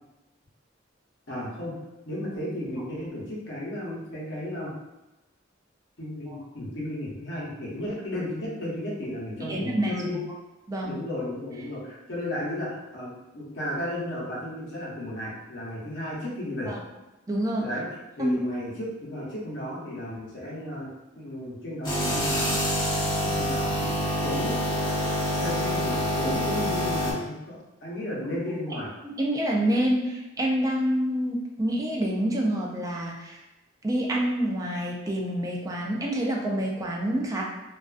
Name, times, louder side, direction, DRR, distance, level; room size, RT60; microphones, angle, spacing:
voice 1, 1.3-1.8 2.0-4.7 6.0-10.2 10.8-16.7 17.6-17.9 18.2-20.9 21.1-22.7 23.2-24.6 25.4-28.9, left 1 dB, 65° left, -6 dB, 0.8 m, -34 dB
voice 2, 9.5-9.9 10.7-11.0 16.7-16.8 17.3-17.6 18.2-18.4 29.0-33.4 33.8-37.4, right 1 dB, 20° right, -1 dB, 0.3 m, -27 dB
sound 1, 21.8-27.1, equal, 25° left, 0.6 m, -26 dB
2.4 x 2.3 x 2.4 m, 1.0 s
head